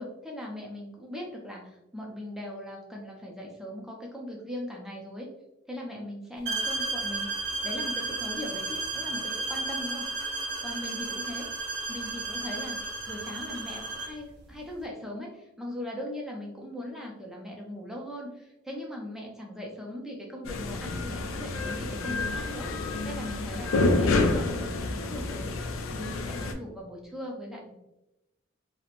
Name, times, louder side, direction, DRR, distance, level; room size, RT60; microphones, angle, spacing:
voice 1, 0.0-5.3 5.7-10.1 10.6-11.4 11.9-12.8 13.1-22.7 23.0-27.7, left 1 dB, ahead, -2 dB, 0.4 m, -39 dB
sound 1, 6.5-14.2, right 3 dB, 55° right, 0.5 m, -33 dB
sound 2, 20.5-26.5, left 2 dB, 75° left, 0.3 m, -28 dB
2.5 x 2.0 x 2.9 m, 0.92 s
head